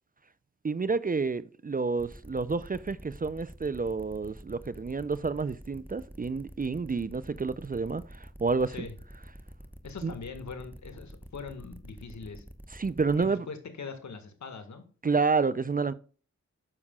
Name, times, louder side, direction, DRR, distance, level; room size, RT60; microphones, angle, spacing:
voice 1, 0.6-8.9 10.0-10.1 12.7-13.5 15.0-15.9, right 4 dB, 30° right, 0.5 m, -29 dB
sound 1, 2.0-13.3, equal, 5° right, 1.1 m, -47 dB
voice 2, 9.8-12.4 13.2-14.8, left 5 dB, 70° left, 1.7 m, -41 dB
9.7 x 7.2 x 2.3 m
cardioid pair, 55°, 30 cm